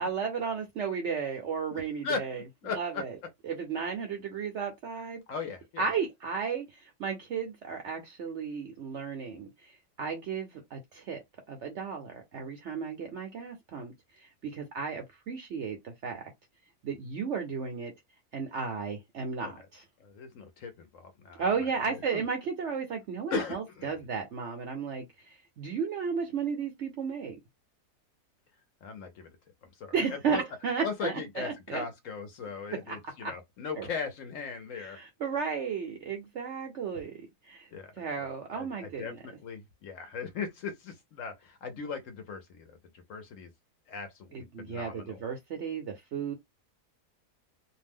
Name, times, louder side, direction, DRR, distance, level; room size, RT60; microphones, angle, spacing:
voice 1, 0.0-2.4 2.7-3.2 3.4-5.2 5.8-9.7 10.0-11.2 11.5-13.9 14.2-16.2 16.8-17.9 18.3-19.8 21.4-27.4 29.9-31.8 32.7-33.0 33.2-33.3 33.8-33.9 34.8-37.1 37.5-37.7 38.0-39.2 44.3-46.3, right 6 dB, 65° right, 0.7 m, -34 dB
voice 2, 1.7-3.0 5.3-5.9 19.4-19.5 20.0-21.5 21.9-22.2 23.3-23.9 28.8-29.4 29.6-29.9 30.3-30.4 30.8-35.0 37.7-42.8 43.1-43.5 43.9-45.2, left 5 dB, 65° left, 0.9 m, -38 dB
2.6 x 2.1 x 3.4 m
omnidirectional pair, 1.7 m